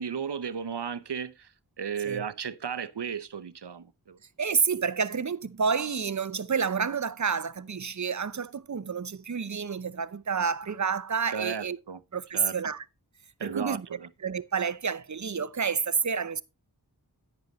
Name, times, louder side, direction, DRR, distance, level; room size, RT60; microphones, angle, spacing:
voice 1, 0.0-1.5 1.8-4.2 11.3-12.0 12.3-12.6 13.4-14.1, right 7 dB, 85° right, 0.7 m, -34 dB
voice 2, 4.4-11.8 12.1-12.8 13.4-13.9 14.2-16.4, right 6 dB, 45° right, 0.7 m, -29 dB
10.5 x 9.5 x 3.1 m
wide cardioid pair, 50°, 40 cm